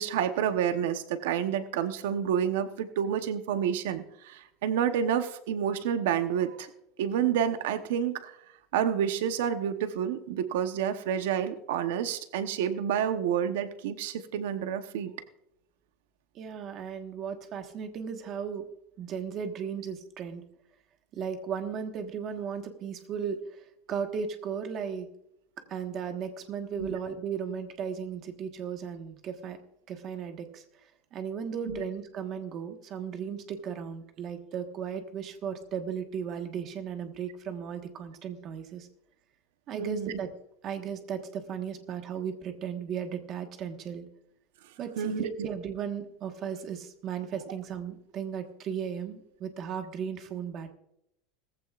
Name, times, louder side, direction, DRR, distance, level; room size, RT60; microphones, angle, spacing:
voice 1, 0.0-6.7 7.0-8.4 8.7-15.1 26.8-27.0 31.7-31.8 39.7-40.2 45.0-45.5, right 8 dB, 90° right, 9 dB, 0.9 m, -29 dB
voice 2, 16.3-18.6 19.0-20.4 21.1-25.1 25.7-29.6 29.9-30.6 31.1-38.9 39.7-40.3 40.6-44.1 44.8-50.7, right 7 dB, 30° right, 6 dB, 1.4 m, -36 dB
18.5 x 15.0 x 2.5 m, 0.78 s
supercardioid pair, 175°, 0 cm